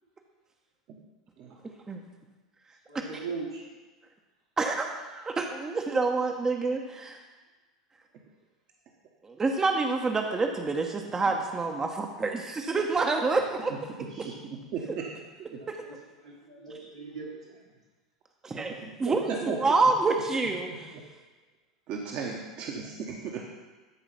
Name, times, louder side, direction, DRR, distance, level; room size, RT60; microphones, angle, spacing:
voice 1, 2.9-3.7 14.1-14.4 14.9-15.1 15.6-15.9 16.2-17.6, right 4 dB, 85° right, -6 dB, 3.2 m, -40 dB
voice 2, 4.6-7.2 9.2-13.9 14.2-14.3 15.7-15.8 18.4-20.9, right 3 dB, 20° right, 3 dB, 0.9 m, -28 dB
voice 3, 14.4-15.1 18.5-19.2 19.5-19.6 21.9-23.4, right 6 dB, 45° right, 0 dB, 1.2 m, -36 dB
13.0 x 5.0 x 5.7 m, 1.3 s
figure-of-eight pair, 80°, 3 cm